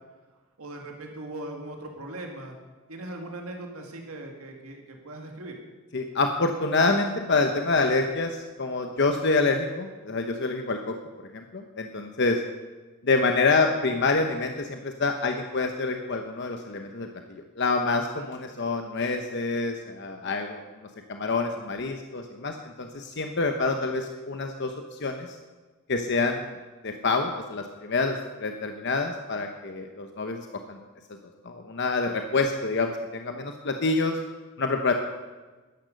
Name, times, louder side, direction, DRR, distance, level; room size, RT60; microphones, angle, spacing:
voice 1, 0.6-2.6 2.9-5.5, right 1 dB, 90° right, 2 dB, 2.0 m, -39 dB
voice 2, 5.9-10.8 11.3-12.4 13.0-20.6 21.1-25.4 25.9-26.5 26.8-30.8 31.4-34.2 34.6-34.9, left 3 dB, 55° left, 5 dB, 0.9 m, -27 dB
13.5 x 10.5 x 6.5 m, 1.3 s
head